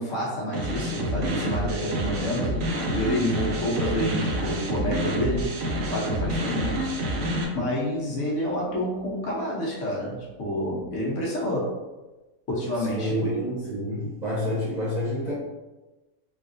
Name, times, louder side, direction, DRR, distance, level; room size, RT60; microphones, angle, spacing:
voice 1, 0.0-2.5 2.9-5.5 5.7-7.1 7.5-11.8 12.5-13.4, equal, 65° left, -5 dB, 1.2 m, -28 dB
sound 1, 0.5-7.4, equal, 60° right, 0.7 m, -28 dB
voice 2, 12.9-15.3, equal, 35° right, -8 dB, 0.9 m, -28 dB
3.4 x 2.4 x 2.5 m, 1.1 s
omnidirectional pair, 1.4 m